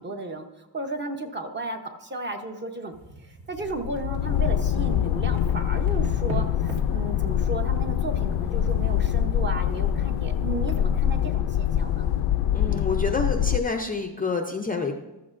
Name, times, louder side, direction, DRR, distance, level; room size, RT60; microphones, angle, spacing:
voice 1, 0.0-2.9 3.2-12.1, right 2 dB, 25° right, 5 dB, 0.8 m, -34 dB
sound 1, 2.9-11.3, right 2 dB, 80° right, 2.5 m, -42 dB
sound 2, 3.6-13.6, left 10 dB, 75° left, 0.6 m, -24 dB
voice 2, 12.5-14.9, left 4 dB, 20° left, 2 dB, 0.4 m, -28 dB
14.5 x 13.0 x 2.5 m, 1.1 s
wide cardioid pair, 175°, 46 cm